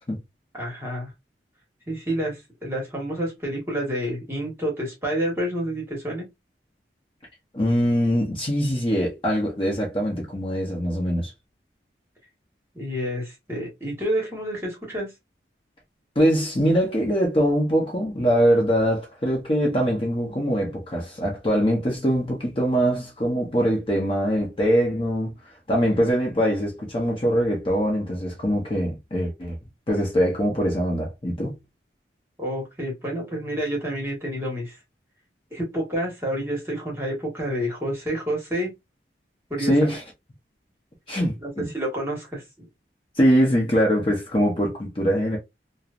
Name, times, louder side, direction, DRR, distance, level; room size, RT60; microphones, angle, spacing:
voice 1, 0.5-1.1 1.9-6.3 12.7-15.1 32.4-34.8 35.5-38.7 39.5-39.9 41.4-42.7, equal, 15° right, 1.1 m, -29 dB
voice 2, 7.5-11.3 16.2-25.3 25.7-29.6 29.9-31.6 39.6-40.0 41.1-41.7 43.2-45.4, equal, 30° left, 0.7 m, -22 dB
3.1 x 2.0 x 2.3 m
head